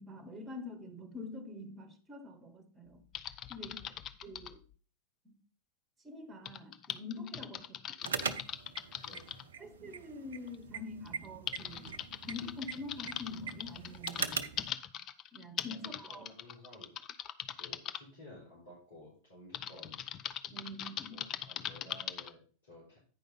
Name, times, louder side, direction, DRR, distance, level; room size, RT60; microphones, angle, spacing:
voice 1, 0.0-3.0 3.5-4.0 4.2-4.6 5.2-5.3 6.0-8.5 9.6-14.5 15.3-16.3 20.5-21.3, left 3 dB, 15° right, 1.4 m, -46 dB
Typing, 3.1-4.6 6.5-9.4 10.5-10.6 11.1-18.0 19.5-22.3, left 10 dB, 30° left, 0.5 m, -41 dB
sound 1, 8.0-14.7, right 6 dB, 65° right, 0.6 m, -41 dB
voice 2, 15.7-16.9 17.6-20.0 21.0-23.0, left 1 dB, 70° left, 4.5 m, -54 dB
9.4 x 5.2 x 5.2 m
figure-of-eight pair, 90°, 0 cm